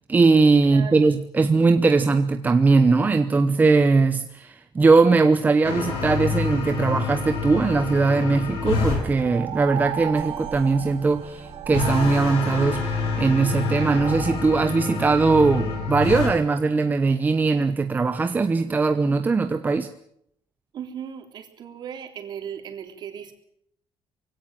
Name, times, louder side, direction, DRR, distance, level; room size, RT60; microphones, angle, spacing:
voice 1, 0.1-19.9, right 4 dB, 20° right, 8 dB, 0.9 m, -20 dB
voice 2, 0.6-1.0 20.7-23.3, right 8 dB, 50° right, 5 dB, 3.6 m, -37 dB
sound 1, 5.6-9.0 11.7-16.3, left 4 dB, 85° left, 7.0 m, -27 dB
sound 2, 8.9-14.4, right 9 dB, 80° right, 4.1 m, -35 dB
23.0 x 17.0 x 9.1 m, 0.74 s
cardioid pair, 155°, 10 cm